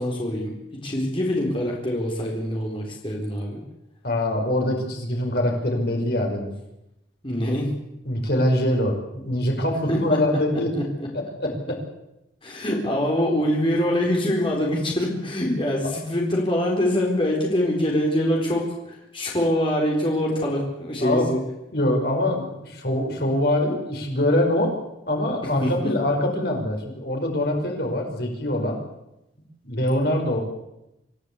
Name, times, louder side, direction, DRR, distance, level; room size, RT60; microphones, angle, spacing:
voice 1, 0.0-3.6 7.2-7.7 9.9-10.2 10.7-11.1 12.4-21.4 25.6-25.9, left 1 dB, 25° left, -1 dB, 4.1 m, -24 dB
voice 2, 4.0-6.5 8.0-10.7 11.1-11.8 21.0-21.3 21.7-24.8 25.1-28.8 29.6-30.4, left 1 dB, 55° left, 1 dB, 4.9 m, -24 dB
26.0 x 15.0 x 8.4 m, 0.89 s
head